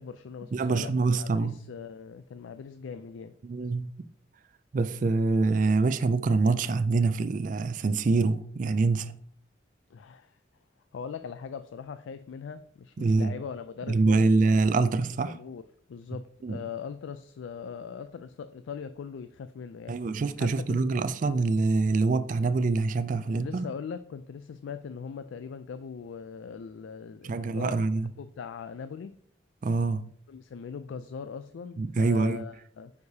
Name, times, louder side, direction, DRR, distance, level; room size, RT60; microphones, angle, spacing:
voice 1, 0.0-3.3 9.9-10.4 10.9-14.3 15.3-15.6 15.9-20.0 20.4-20.8 23.4-27.7 28.2-29.2 30.3-32.9, left 6 dB, 80° left, 0.3 m, -40 dB
voice 2, 0.5-1.6 3.4-3.9 4.7-9.1 13.0-13.4 13.9-15.4 16.4-16.6 19.9-23.7 27.2-28.1 29.6-30.1 31.8-32.4, right 3 dB, 45° right, 0.3 m, -25 dB
9.3 x 4.8 x 2.8 m
head